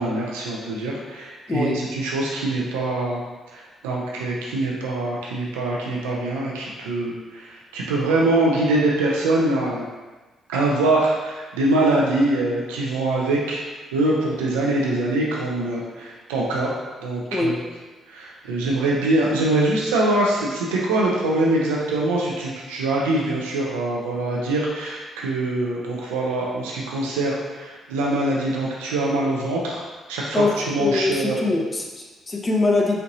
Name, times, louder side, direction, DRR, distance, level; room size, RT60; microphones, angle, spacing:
voice 1, 0.0-3.2 3.5-9.9 10.5-13.6 13.9-16.7 17.0-17.6 18.1-29.8 30.1-31.4, right 2 dB, 85° right, -4 dB, 0.5 m, -23 dB
voice 2, 30.3-33.0, left 3 dB, 30° left, 0 dB, 0.6 m, -23 dB
4.3 x 2.6 x 2.6 m, 1.2 s
hypercardioid pair, 50°, 0 cm